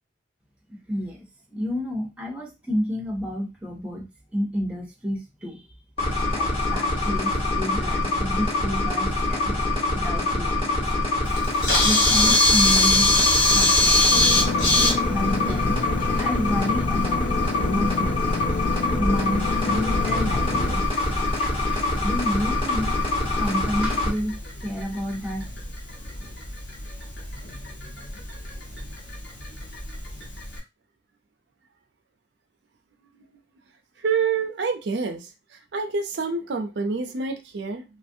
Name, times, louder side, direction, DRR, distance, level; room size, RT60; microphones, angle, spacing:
voice 1, 0.7-1.2 1.5-4.0 4.3-5.7 6.3-10.9 11.8-13.3 13.5-14.5 15.1-15.8 16.2-18.3 19.0-22.9 23.4-25.4, equal, 5° right, 0.6 m, -30 dB
sound 1, 6.0-24.1, left 2 dB, 30° left, 1.1 m, -25 dB
Camera, 11.3-30.6, left 2 dB, 65° left, 1.1 m, -26 dB
sound 2, 14.1-20.8, left 4 dB, 50° left, 0.4 m, -29 dB
voice 2, 34.0-35.3 35.7-37.8, right 5 dB, 70° right, 0.5 m, -27 dB
3.0 x 2.4 x 2.6 m
head